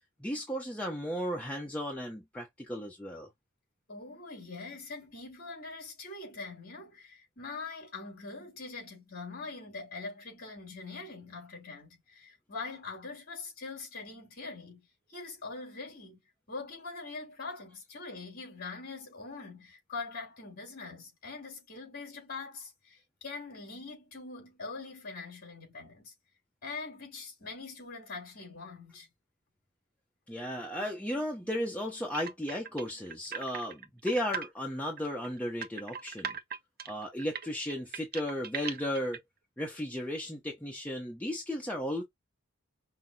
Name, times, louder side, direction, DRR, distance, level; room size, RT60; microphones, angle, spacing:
voice 1, 0.2-3.3 30.3-36.4 36.9-39.2 39.6-42.0, equal, 5° left, 0.8 m, -35 dB
voice 2, 3.9-16.2 16.5-26.1 26.6-29.1, left 3 dB, 45° left, 3.5 m, -43 dB
sound 1, 32.1-34.5 34.9-39.2, right 7 dB, 45° right, 0.6 m, -39 dB
5.7 x 2.1 x 2.8 m
head